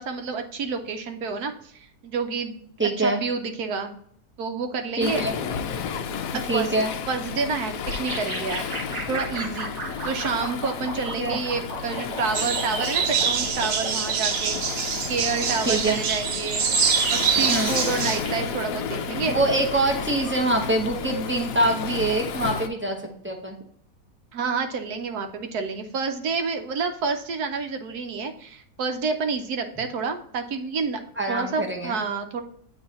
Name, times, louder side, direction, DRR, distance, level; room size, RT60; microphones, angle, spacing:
voice 1, 0.0-2.6 3.0-3.9 4.4-5.3 6.3-7.7 8.0-9.7 10.0-14.6 15.1-16.6 17.1-19.4 24.3-31.0 31.3-32.4, right 4 dB, 65° right, 6 dB, 1.2 m, -29 dB
voice 2, 2.8-3.2 5.0-5.3 6.5-6.9 11.2-11.4 15.7-16.0 17.5-17.7 19.3-23.0 23.2-23.6 31.2-32.0, right 2 dB, 15° right, 1 dB, 0.5 m, -24 dB
Waves surf, 5.0-22.7, left 6 dB, 65° left, 0.9 m, -32 dB
sound 1, 7.9-14.2, right 1 dB, 40° right, 1.5 m, -35 dB
sound 2, 12.3-18.2, right 7 dB, 85° right, 1.5 m, -25 dB
8.9 x 3.1 x 4.1 m, 0.64 s
omnidirectional pair, 1.9 m